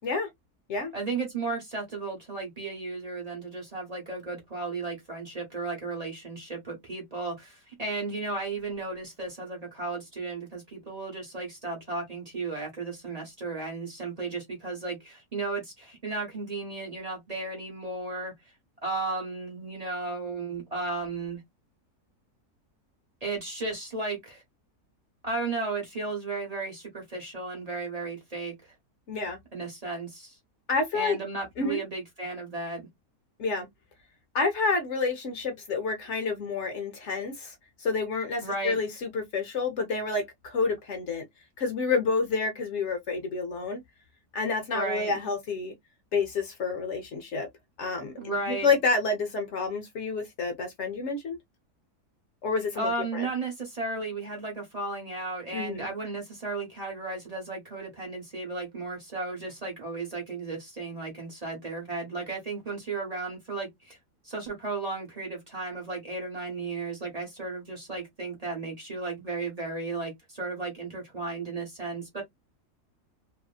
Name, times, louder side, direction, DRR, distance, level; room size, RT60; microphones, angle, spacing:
voice 1, 0.9-18.3 18.8-21.4 23.2-24.4 25.2-28.7 29.5-30.4 30.9-32.9 38.4-38.8 44.7-45.1 48.2-48.7 52.7-64.0 64.2-72.2, right 3 dB, 30° right, 0.9 m, -34 dB
voice 2, 29.1-29.4 30.7-31.2 31.6-31.8 33.4-33.7 34.3-41.3 41.6-43.8 44.3-45.8 46.1-47.5 47.8-51.4 52.4-53.3 55.5-55.9, left 4 dB, 60° left, 0.8 m, -29 dB
2.8 x 2.5 x 2.3 m
omnidirectional pair, 1.7 m